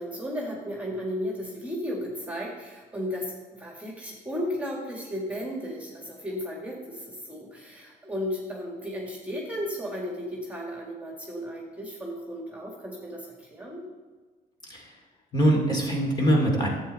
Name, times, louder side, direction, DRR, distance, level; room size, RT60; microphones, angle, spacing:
voice 1, 0.0-13.8, equal, 10° right, -1 dB, 2.0 m, -34 dB
voice 2, 14.6-15.0 15.3-16.7, right 1 dB, 25° left, -1 dB, 2.5 m, -23 dB
11.0 x 8.1 x 4.0 m, 1.4 s
cardioid pair, 110°, 17 cm